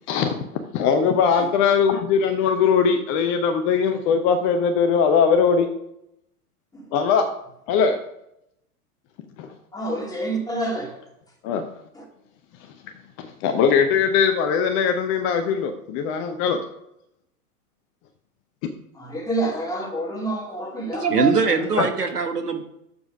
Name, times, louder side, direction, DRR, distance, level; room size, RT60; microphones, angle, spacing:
voice 1, 0.1-0.4 0.7-5.7 6.9-7.3 7.7-8.0 9.4-9.5 11.4-11.6 13.2-16.6 21.8-21.9, left 6 dB, 30° left, 7 dB, 0.7 m, -20 dB
voice 2, 9.7-11.0 11.9-12.0 18.9-21.9, right 1 dB, 10° left, -1 dB, 2.1 m, -29 dB
voice 3, 21.0-22.6, right 4 dB, 80° right, 6 dB, 1.3 m, -21 dB
7.0 x 6.9 x 5.1 m, 0.80 s
figure-of-eight pair, 95°, 46 cm